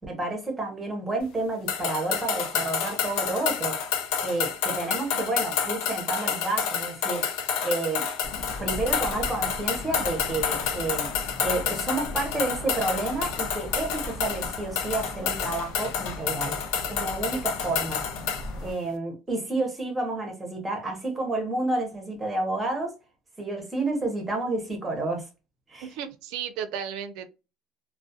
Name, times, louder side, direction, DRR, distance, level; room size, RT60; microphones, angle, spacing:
voice 1, 0.1-3.8 4.2-8.1 8.6-11.1 11.4-16.6 16.9-18.0 18.6-22.9 23.4-25.2 25.7-25.9, right 2 dB, 10° right, 0.7 m, -30 dB
sound 1, 1.7-18.5, left 7 dB, 90° left, 0.5 m, -29 dB
sound 2, 8.2-18.7, left 1 dB, 45° left, 0.7 m, -39 dB
voice 2, 25.8-27.3, right 8 dB, 70° right, 0.4 m, -35 dB
2.3 x 2.1 x 2.6 m
cardioid pair, 175°, 0 cm